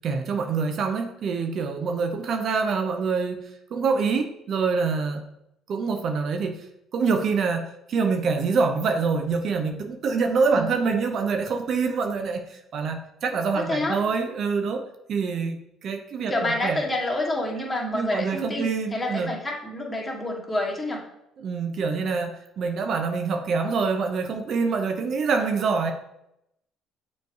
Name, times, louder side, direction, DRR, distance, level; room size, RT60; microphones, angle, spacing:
voice 1, 0.0-5.3 5.7-6.7 6.9-16.9 17.9-19.3 21.4-25.9, right 5 dB, 55° right, 5 dB, 0.7 m, -26 dB
voice 2, 10.5-10.9 13.5-14.0 16.3-21.0, left 1 dB, 20° left, -2 dB, 2.0 m, -28 dB
6.8 x 3.2 x 4.6 m, 0.81 s
hypercardioid pair, 65°, 0 cm